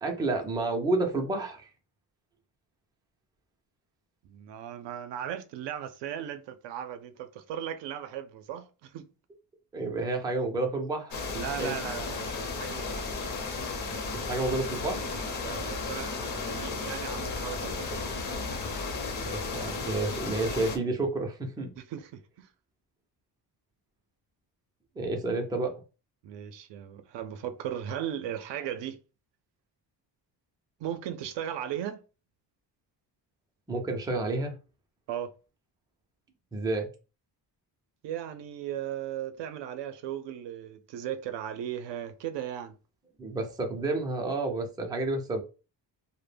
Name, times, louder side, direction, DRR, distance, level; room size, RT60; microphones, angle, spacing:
voice 1, 0.0-1.7 9.7-11.2 11.6-11.8 14.1-15.1 19.2-21.7 25.0-25.8 33.7-34.5 36.5-36.9 43.2-45.4, right 2 dB, 10° right, 0.4 m, -30 dB
voice 2, 4.2-9.1 11.3-13.4 15.4-18.0 21.8-22.1 22.4-22.5 26.2-29.0 30.8-32.0 35.1-35.3 38.0-42.8, right 10 dB, 75° right, 0.5 m, -37 dB
sound 1, 11.1-20.8, left 4 dB, 45° left, 0.7 m, -34 dB
2.1 x 2.1 x 3.2 m
cardioid pair, 135°, 43 cm